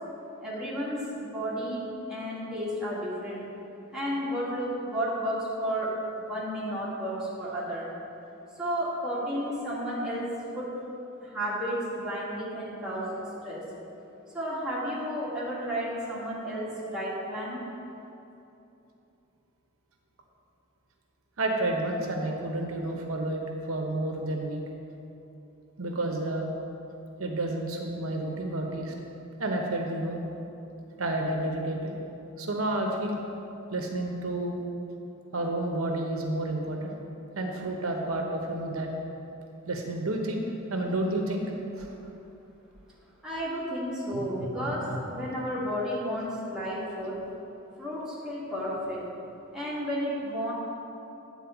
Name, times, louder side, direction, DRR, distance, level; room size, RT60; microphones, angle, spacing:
voice 1, 0.4-3.5 3.9-7.9 8.6-10.3 10.5-10.8 11.2-13.7 14.3-17.6 43.2-47.2 47.8-49.0 49.5-50.5, equal, 5° right, -9 dB, 2.0 m, -32 dB
voice 2, 21.4-23.4 23.7-24.6 25.8-26.5 27.2-28.9 29.4-30.2 31.0-31.9 32.4-33.2 33.7-34.6 35.3-37.0 37.3-38.9 39.7-41.5 41.7-41.9 44.1-45.0, right 1 dB, 75° right, 2 dB, 0.9 m, -30 dB
9.4 x 4.4 x 7.1 m, 2.9 s
head